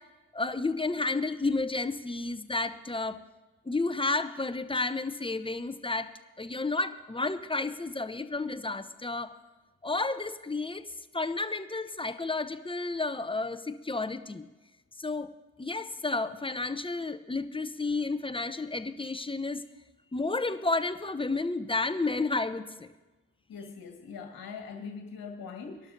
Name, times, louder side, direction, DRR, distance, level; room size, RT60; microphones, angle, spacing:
voice 1, 0.3-3.2 3.7-6.1 6.4-9.3 9.8-10.9 11.1-14.5 15.0-15.3 15.6-19.6 20.1-22.9, left 3 dB, 15° left, 11 dB, 0.8 m, -31 dB
voice 2, 23.5-25.9, left 5 dB, 55° left, 2 dB, 1.8 m, -42 dB
24.0 x 12.0 x 2.7 m, 1.1 s
hypercardioid pair, 40°, 41 cm